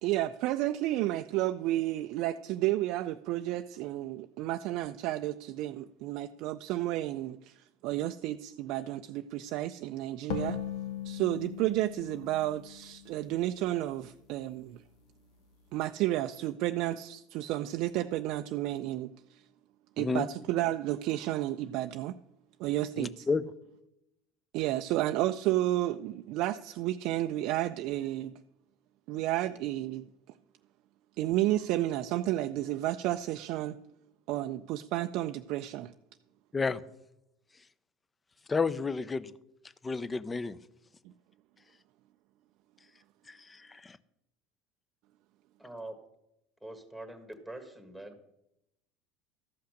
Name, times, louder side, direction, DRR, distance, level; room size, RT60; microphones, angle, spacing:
voice 1, 0.0-7.6 7.8-10.6 11.0-14.8 15.7-19.4 20.0-22.2 22.6-23.3 24.5-28.3 29.1-30.1 31.2-33.8 34.3-35.9, right 15 dB, 65° right, 8 dB, 0.4 m, -31 dB
sound 1, 10.3-13.8, left 9 dB, 75° left, 1.3 m, -39 dB
voice 2, 20.0-20.3 23.0-23.4 36.5-36.8 38.5-39.3 39.8-40.6 43.3-44.0, left 4 dB, 20° left, 16 dB, 0.6 m, -31 dB
voice 3, 45.6-46.0 46.6-48.2, right 1 dB, 5° left, 6 dB, 1.6 m, -44 dB
13.0 x 5.7 x 6.4 m, 0.85 s
hypercardioid pair, 85°, 0 cm